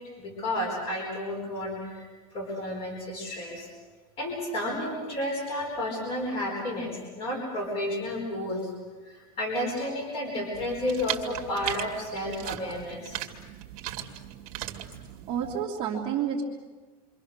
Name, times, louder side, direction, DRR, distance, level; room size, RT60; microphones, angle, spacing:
voice 1, 0.2-2.0 2.3-3.7 4.2-8.7 9.0-13.2, left 1 dB, 30° left, 1 dB, 4.6 m, -31 dB
sound 1, 10.5-15.6, right 14 dB, 55° right, 2.2 m, -38 dB
voice 2, 15.3-16.4, right 8 dB, 25° right, -3 dB, 2.6 m, -29 dB
28.5 x 25.0 x 6.6 m, 1.4 s
supercardioid pair, 180°, 20 cm